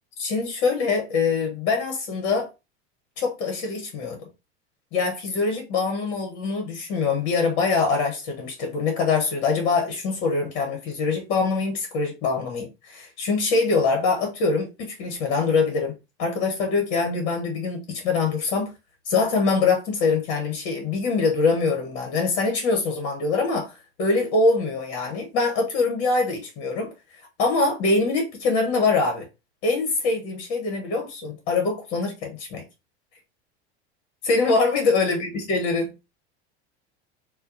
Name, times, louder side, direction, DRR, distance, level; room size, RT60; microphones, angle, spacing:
voice 1, 0.2-2.5 3.2-4.2 4.9-15.9 16.2-18.7 19.1-26.9 27.4-29.2 29.6-32.6 34.2-35.9, left 4 dB, 60° left, 1.4 m, -24 dB
4.1 x 2.3 x 2.7 m
hypercardioid pair, 95°, 34 cm